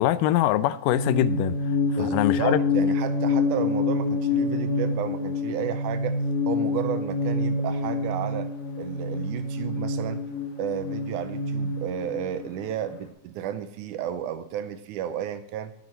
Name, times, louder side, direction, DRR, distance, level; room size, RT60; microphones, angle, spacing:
voice 1, 0.0-1.6 2.0-2.6, left 13 dB, 85° left, 14 dB, 2.2 m, -23 dB
sound 1, 0.9-12.9, left 3 dB, 60° left, 2.7 m, -27 dB
voice 2, 1.9-6.2 6.5-8.5 8.8-10.2 10.6-15.7, right 10 dB, 80° right, 10 dB, 2.0 m, -32 dB
10.5 x 8.0 x 4.3 m, 0.84 s
omnidirectional pair, 3.8 m